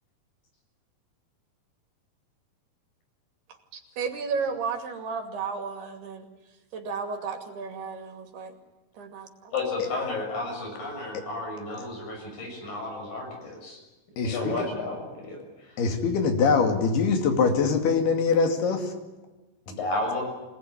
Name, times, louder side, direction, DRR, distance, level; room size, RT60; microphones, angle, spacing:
voice 1, 3.7-6.3 6.7-8.5 9.0-9.5, right 5 dB, 90° right, 5 dB, 4.5 m, -33 dB
voice 2, 9.5-13.8 14.2-15.8 19.7-20.2, left 2 dB, 60° left, 2 dB, 8.5 m, -32 dB
voice 3, 14.2-14.7 15.8-18.9, left 5 dB, 85° left, 5 dB, 4.4 m, -23 dB
26.0 x 19.0 x 9.9 m, 1.1 s
omnidirectional pair, 4.5 m